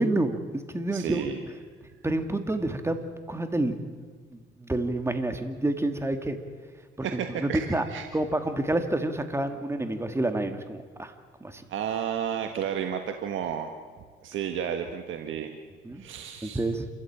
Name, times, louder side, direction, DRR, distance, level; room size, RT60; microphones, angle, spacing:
voice 1, 0.0-1.2 2.0-3.8 4.3-6.4 7.4-7.9 8.1-11.1 11.4-11.6 15.8-16.0 16.4-16.9, right 2 dB, 15° right, 6 dB, 2.3 m, -28 dB
voice 2, 0.9-1.4 7.0-8.0 11.7-13.7 14.2-15.5 15.9-16.6, right 8 dB, 75° right, 5 dB, 1.5 m, -32 dB
28.0 x 14.0 x 8.8 m, 1.5 s
cardioid pair, 90°, 20 cm